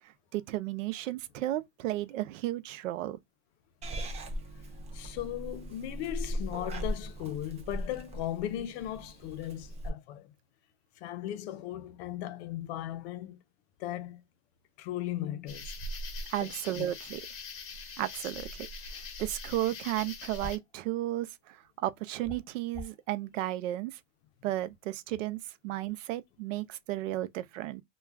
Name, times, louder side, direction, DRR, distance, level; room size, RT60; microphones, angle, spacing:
voice 1, 0.0-3.2 16.3-17.2 18.0-18.7 19.2-24.0 24.4-27.8, right 15 dB, 75° right, 0.5 m, -34 dB
Purr / Meow, 3.8-9.9, equal, 20° right, 0.4 m, -38 dB
voice 2, 4.9-10.3 11.0-13.4 13.8-14.2 14.8-15.8 16.4-16.9, left 12 dB, 55° left, 0.6 m, -37 dB
sound 1, 15.5-20.6, left 2 dB, 35° left, 1.0 m, -42 dB
sound 2, 20.4-20.7 22.2-23.0, left 2 dB, 5° left, 0.8 m, -42 dB
2.3 x 2.2 x 3.3 m
supercardioid pair, 120°, 38 cm